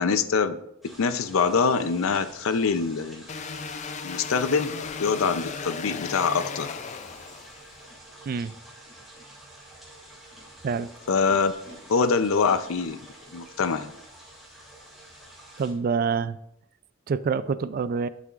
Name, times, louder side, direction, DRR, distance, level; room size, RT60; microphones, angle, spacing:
voice 1, 0.0-3.2 4.0-6.8 11.1-11.5 11.9-13.0 13.3-13.9, left 5 dB, 90° left, 12 dB, 0.5 m, -24 dB
sound 1, 0.8-15.7, right 1 dB, ahead, 2.7 m, -48 dB
sound 2, 3.3-7.8, left 5 dB, 35° left, 0.4 m, -36 dB
Animal, 7.9-8.0 8.7-9.2 10.1-11.7 12.4-13.7, left 2 dB, 65° left, 3.3 m, -51 dB
voice 2, 15.6-16.4 17.1-18.1, right 5 dB, 45° right, 15 dB, 0.3 m, -26 dB
11.5 x 7.4 x 2.5 m, 0.80 s
head